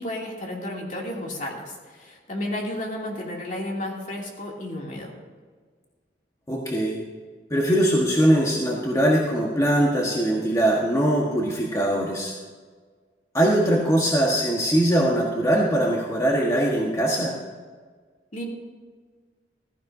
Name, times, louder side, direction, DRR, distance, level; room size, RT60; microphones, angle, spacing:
voice 1, 0.0-5.1 18.3-18.5, left 1 dB, 45° left, -1 dB, 2.7 m, -32 dB
voice 2, 6.5-7.0 7.5-12.3 13.3-17.3, right 1 dB, 20° left, -3 dB, 1.4 m, -21 dB
15.0 x 15.0 x 2.7 m, 1.5 s
head